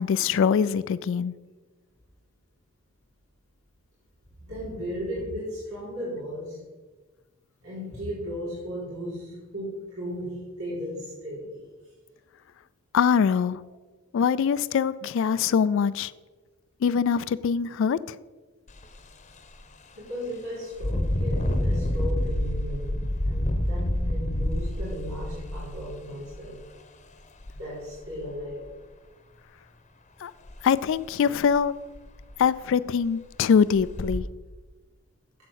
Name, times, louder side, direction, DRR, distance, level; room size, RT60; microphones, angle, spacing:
voice 1, 0.0-1.3 12.9-13.6 14.1-16.1 16.8-18.2 30.2-30.3 30.6-31.7 32.4-34.2, left 6 dB, 60° left, 16 dB, 0.3 m, -23 dB
voice 2, 4.4-6.6 7.6-11.6 20.0-26.6 27.5-28.7, equal, 90° right, -8 dB, 3.9 m, -36 dB
Engine, 18.7-18.9 19.4-19.5 20.7-26.5 27.4-27.5 28.0-28.7 30.5-30.6 31.0-31.1 31.5-31.6 32.0-32.5 33.0-33.1 33.7-34.2, left 1 dB, 35° left, 0.9 m, -28 dB
8.2 x 7.7 x 6.4 m, 1.3 s
head